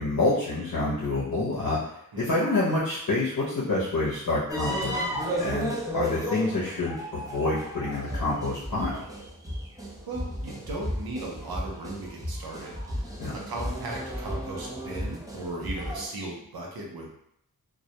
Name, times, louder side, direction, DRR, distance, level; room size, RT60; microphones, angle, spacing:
voice 1, 0.0-9.1 13.2-13.4, left 2 dB, 60° left, -6 dB, 0.7 m, -28 dB
sound 1, 4.5-16.1, equal, 10° right, 0.5 m, -34 dB
voice 2, 10.1-13.2 13.5-17.1, right 2 dB, 85° right, -2 dB, 0.6 m, -37 dB
2.2 x 2.1 x 2.8 m, 0.74 s
wide cardioid pair, 65°, 36 cm